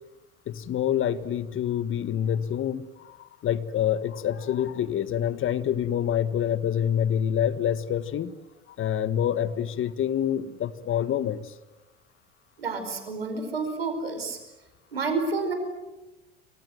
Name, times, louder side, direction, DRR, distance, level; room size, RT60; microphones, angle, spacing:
voice 1, 0.5-8.3 8.8-11.5, left 9 dB, 45° left, 14 dB, 1.7 m, -27 dB
voice 2, 12.6-14.4 14.9-15.5, right 4 dB, 90° right, 7 dB, 5.1 m, -29 dB
27.5 x 25.0 x 7.9 m, 1.0 s
hypercardioid pair, 70°, 29 cm